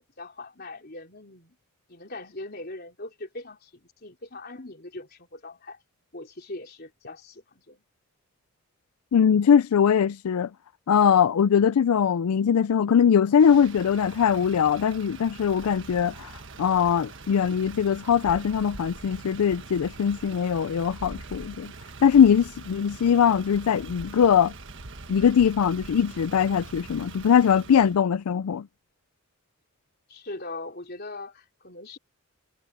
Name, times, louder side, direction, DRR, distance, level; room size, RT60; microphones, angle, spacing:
voice 1, 0.0-1.6 1.9-5.8 6.1-7.8 30.1-32.0, left 2 dB, 45° left, 3.8 m, -41 dB
voice 2, 9.1-10.5 10.9-21.7 22.0-24.5 25.1-28.7, left 7 dB, 90° left, 0.4 m, -21 dB
Motor vehicle (road), 13.3-28.0, right 3 dB, 55° right, 1.5 m, -43 dB
head